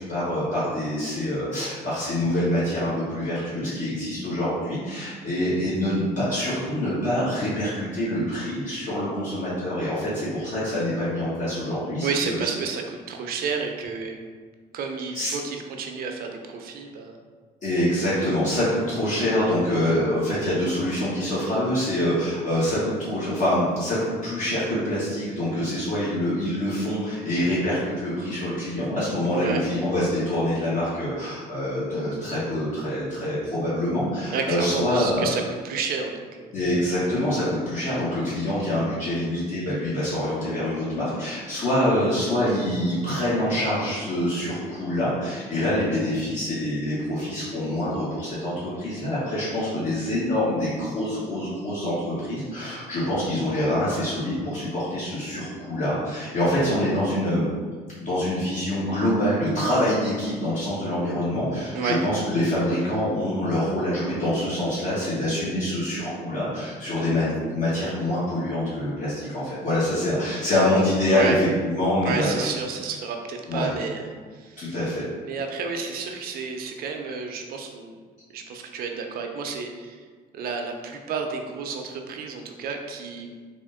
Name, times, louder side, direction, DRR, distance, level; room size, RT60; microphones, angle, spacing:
voice 1, 0.0-12.3 15.1-15.3 17.6-35.3 36.5-57.5 58.0-72.5 73.5-73.7 74.6-75.1, left 1 dB, 50° left, -10 dB, 1.1 m, -25 dB
voice 2, 12.0-14.2 14.7-17.2 29.2-29.6 34.3-36.5 61.7-62.0 71.1-71.4 72.0-74.7 75.2-78.0 78.3-80.0 80.3-83.3, right 5 dB, 65° right, 3 dB, 0.6 m, -31 dB
3.5 x 2.5 x 3.6 m, 1.5 s
cardioid pair, 110°, 17 cm